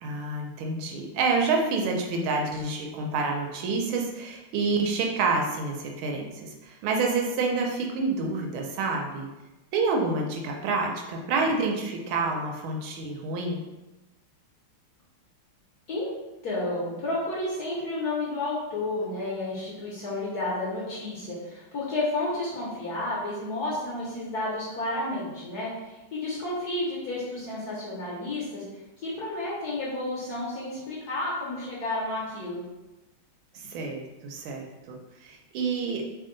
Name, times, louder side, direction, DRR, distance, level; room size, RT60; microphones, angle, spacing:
voice 1, 0.0-9.3 9.7-13.6 33.5-35.0 35.2-36.0, right 3 dB, 80° right, 1 dB, 1.3 m, -28 dB
voice 2, 16.4-28.6 29.0-32.6, left 2 dB, 60° left, -6 dB, 1.1 m, -31 dB
3.5 x 2.2 x 3.7 m, 1.0 s
omnidirectional pair, 2.3 m